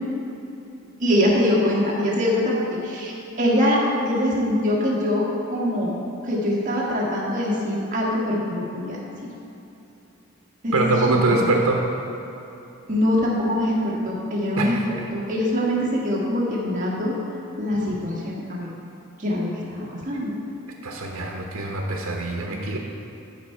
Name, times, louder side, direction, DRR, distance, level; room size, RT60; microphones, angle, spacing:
voice 1, 1.0-5.2 5.5-6.0 6.2-9.0 9.2-9.3 10.6-10.8 11.1-11.5 12.9-17.1 17.6-18.7 19.2-20.3, left 1 dB, 35° right, -5 dB, 1.6 m, -23 dB
voice 2, 10.7-11.8 14.6-15.1 20.8-22.8, right 2 dB, 75° right, 0 dB, 0.9 m, -23 dB
13.0 x 4.9 x 4.4 m, 3.0 s
head